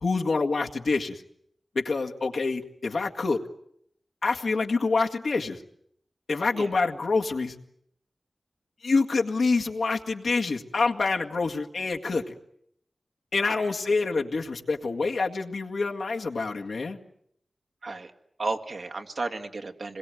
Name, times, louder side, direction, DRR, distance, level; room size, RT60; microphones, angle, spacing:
voice 1, 0.0-1.2 1.8-3.4 4.2-5.6 6.3-7.6 8.8-12.3 13.3-17.0, left 3 dB, 85° left, 1 dB, 2.0 m, -26 dB
voice 2, 18.4-20.0, right 3 dB, 70° right, 5 dB, 2.2 m, -33 dB
26.5 x 21.5 x 9.3 m, 0.72 s
wide cardioid pair, 75°, 0 cm